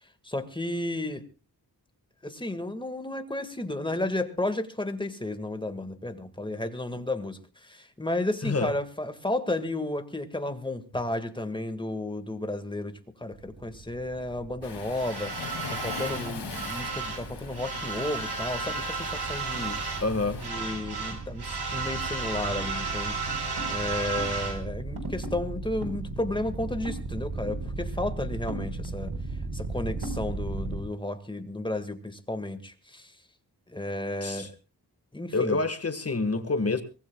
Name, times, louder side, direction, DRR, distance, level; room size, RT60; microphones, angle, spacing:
voice 1, 0.2-1.2 2.2-19.8 20.4-29.1 29.5-33.1 33.7-34.5 35.1-35.6, left 1 dB, 10° left, 1.8 m, -33 dB
voice 2, 8.4-8.7 20.0-20.5 34.2-34.5 35.3-36.8, left 3 dB, 35° left, 1.6 m, -27 dB
sound 1, 13.3-30.8, right 4 dB, 75° right, 4.1 m, -33 dB
Waves surf, 14.6-20.5, left 5 dB, 75° left, 2.5 m, -41 dB
23.5 x 19.5 x 2.3 m
wide cardioid pair, 110°, 40 cm